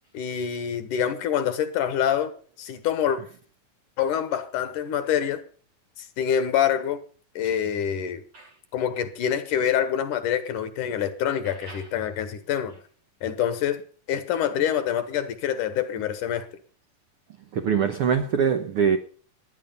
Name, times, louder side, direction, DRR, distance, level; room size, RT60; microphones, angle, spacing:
voice 1, 0.1-3.2 4.0-5.4 6.0-7.0 7.4-8.2 8.7-12.7 13.2-13.8 14.1-16.5, left 9 dB, 70° left, 2.6 m, -26 dB
voice 2, 17.5-19.0, right 7 dB, 80° right, 1.2 m, -23 dB
18.0 x 9.7 x 5.4 m
omnidirectional pair, 4.1 m